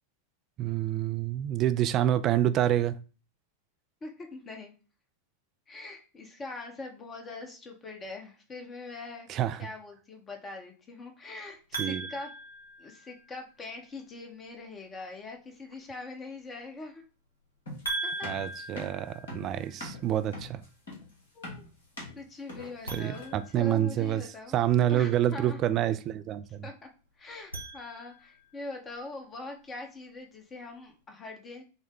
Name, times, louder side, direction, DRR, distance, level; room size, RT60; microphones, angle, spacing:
voice 1, 0.6-3.0 9.3-9.6 11.8-12.1 18.2-20.6 22.9-24.2 24.5-26.7, right 12 dB, 35° right, 0.3 m, -27 dB
voice 2, 4.0-4.7 5.7-9.3 9.6-12.3 12.8-17.0 18.0-18.3 21.3-21.7 22.1-24.6 24.9-25.6 26.6-26.9 27.2-31.6, left 3 dB, 20° left, 0.9 m, -42 dB
sound 1, 11.7-13.4 17.8-19.9 22.8-24.4 27.3-28.5, right 2 dB, 80° left, 1.3 m, -39 dB
sound 2, 17.7-23.5, left 2 dB, 65° left, 1.6 m, -43 dB
6.3 x 2.2 x 3.6 m
figure-of-eight pair, 90°, 0 cm